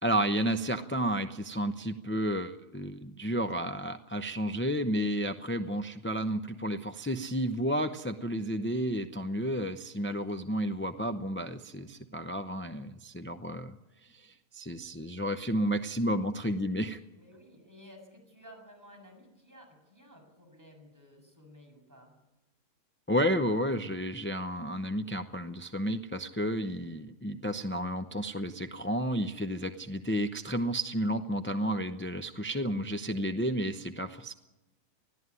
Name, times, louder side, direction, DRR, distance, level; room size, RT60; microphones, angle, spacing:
voice 1, 0.0-17.0 23.1-34.3, equal, 15° left, 6 dB, 0.4 m, -32 dB
voice 2, 17.1-22.1, equal, 10° right, 1 dB, 7.1 m, -54 dB
21.0 x 14.5 x 9.7 m, 1.0 s
omnidirectional pair, 1.6 m